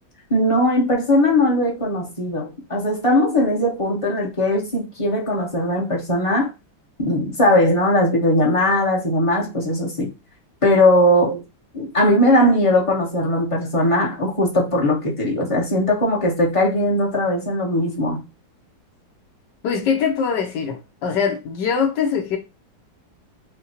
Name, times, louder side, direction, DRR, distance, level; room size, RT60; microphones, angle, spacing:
voice 1, 0.3-6.5 7.0-10.1 10.6-11.4 11.7-18.2, left 1 dB, 25° left, 0.9 m, -19 dB
voice 2, 19.6-22.4, left 6 dB, 70° left, 1.3 m, -22 dB
6.6 x 2.2 x 2.8 m
omnidirectional pair, 2.1 m